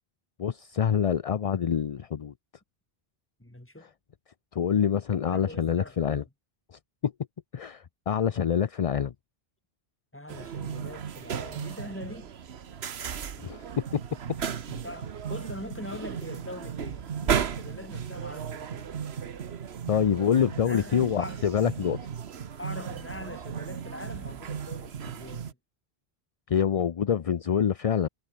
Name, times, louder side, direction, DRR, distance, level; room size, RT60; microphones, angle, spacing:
voice 1, 0.4-2.3 4.5-6.2 7.0-7.1 7.5-9.1 13.4-13.7 13.9-14.0 19.9-22.0 26.5-28.1, left 8 dB, 45° left, 0.5 m, -26 dB
voice 2, 3.4-3.9 5.3-6.2 10.1-12.3 14.7-18.9 20.7-21.5 22.6-25.6, left 1 dB, 10° left, 2.1 m, -42 dB
sound 1, 10.3-25.5, right 7 dB, 80° right, 1.3 m, -35 dB
omnidirectional pair, 1.1 m